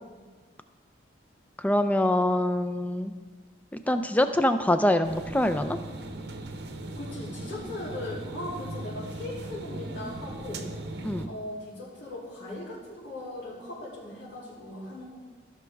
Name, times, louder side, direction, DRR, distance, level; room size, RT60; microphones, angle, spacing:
voice 1, 1.6-3.1 3.9-5.8 11.0-11.3, left 1 dB, 10° left, 9 dB, 0.3 m, -24 dB
sound 1, 5.0-11.2, right 2 dB, 60° right, 0.8 m, -38 dB
voice 2, 6.9-10.7 11.3-15.1, left 1 dB, 75° left, -8 dB, 2.9 m, -39 dB
14.5 x 6.3 x 3.4 m, 1.5 s
head